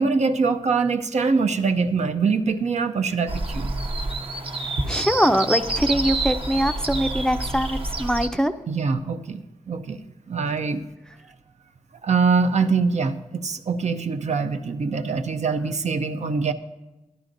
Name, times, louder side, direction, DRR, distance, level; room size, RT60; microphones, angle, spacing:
voice 1, 0.0-3.7 8.7-9.4 9.7-10.0 10.3-10.8 12.0-16.5, right 4 dB, 65° right, 7 dB, 0.5 m, -23 dB
sound 1, 3.3-8.3, right 2 dB, 50° right, 0.9 m, -27 dB
voice 2, 4.8-8.5, equal, 5° left, 8 dB, 0.4 m, -22 dB
12.0 x 10.5 x 2.6 m, 1.0 s
cardioid pair, 50°, 12 cm